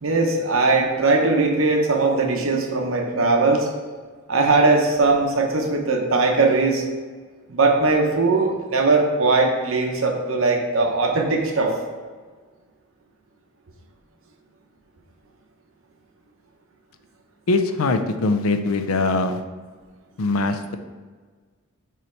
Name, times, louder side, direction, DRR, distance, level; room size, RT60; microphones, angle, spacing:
voice 1, 0.0-3.7 4.3-6.8 7.5-11.7, right 3 dB, 70° right, 2 dB, 0.9 m, -20 dB
voice 2, 17.5-19.4 20.2-20.8, left 3 dB, 85° left, 8 dB, 0.5 m, -22 dB
6.8 x 3.1 x 4.4 m, 1.5 s
head